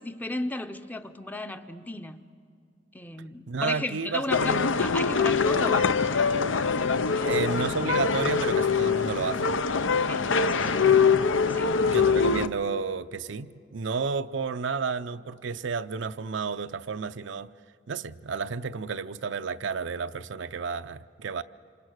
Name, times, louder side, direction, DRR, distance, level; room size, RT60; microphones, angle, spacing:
voice 1, 0.0-2.2 2.9-6.0 7.1-7.5 10.1-10.6 11.5-11.7, left 1 dB, 10° left, 0.7 m, -35 dB
voice 2, 3.5-4.7 5.5-5.9 7.2-9.6 10.6-11.0 11.9-17.5 17.9-21.4, right 5 dB, 65° right, 0.6 m, -32 dB
sound 1, 4.3-12.5, left 5 dB, 75° left, 0.7 m, -23 dB
27.0 x 26.5 x 6.4 m
head